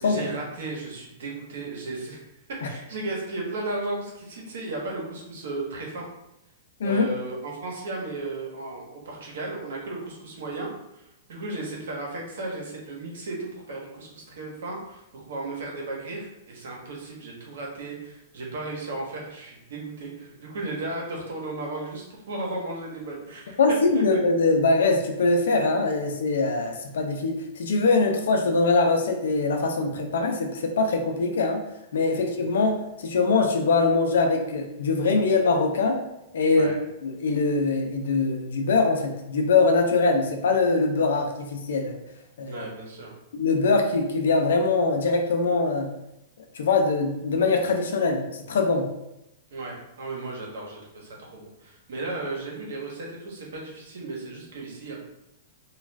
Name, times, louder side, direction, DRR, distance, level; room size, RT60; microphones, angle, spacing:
voice 1, 0.0-2.3 2.6-6.0 6.8-23.6 32.1-32.2 36.5-36.8 42.5-43.1 49.5-55.0, right 2 dB, 80° right, -2 dB, 1.0 m, -35 dB
voice 2, 23.6-31.6 31.9-36.0 36.3-36.7 37.0-42.0 42.4-42.6 43.3-45.9 46.6-48.9, left 3 dB, 85° left, 3 dB, 0.5 m, -23 dB
2.4 x 2.3 x 3.2 m, 0.88 s
hypercardioid pair, 140°, 0 cm